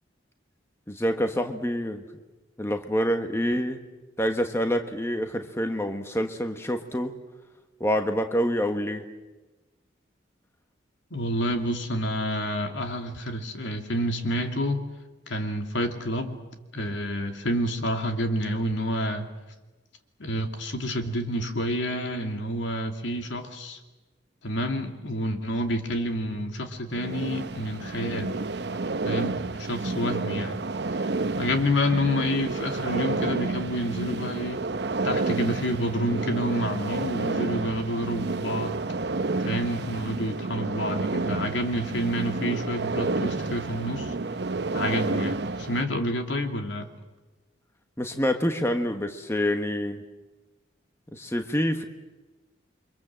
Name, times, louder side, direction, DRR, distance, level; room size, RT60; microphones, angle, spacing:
voice 1, 0.9-2.0 2.6-3.8 4.2-7.1 7.8-9.1 48.0-50.0 51.1-51.8, equal, 15° left, 6 dB, 1.3 m, -27 dB
voice 2, 11.1-14.9 15.3-16.4 16.7-19.3 20.2-23.8 24.4-28.4 29.0-30.6 31.4-34.6 35.0-38.8 39.4-44.1 44.7-46.9, equal, 75° left, 5 dB, 2.6 m, -28 dB
sound 1, 26.9-45.8, right 3 dB, 60° right, 0.8 m, -30 dB
29.5 x 24.5 x 7.6 m, 1.2 s
head